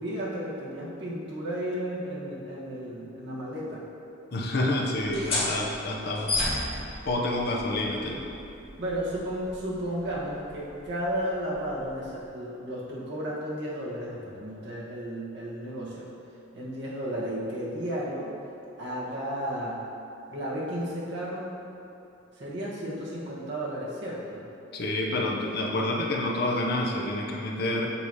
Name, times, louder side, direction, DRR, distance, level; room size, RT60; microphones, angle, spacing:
voice 1, 0.0-3.9 8.8-16.1 16.5-18.3 18.8-19.9 20.3-21.5 22.3-24.4, equal, 55° right, -7 dB, 1.3 m, -33 dB
voice 2, 4.3-6.3 7.0-8.2 24.7-27.9, left 1 dB, 50° left, -1 dB, 0.7 m, -28 dB
sound 1, 5.0-12.3, left 2 dB, 30° left, 1.1 m, -35 dB
6.9 x 2.8 x 4.8 m, 2.8 s
head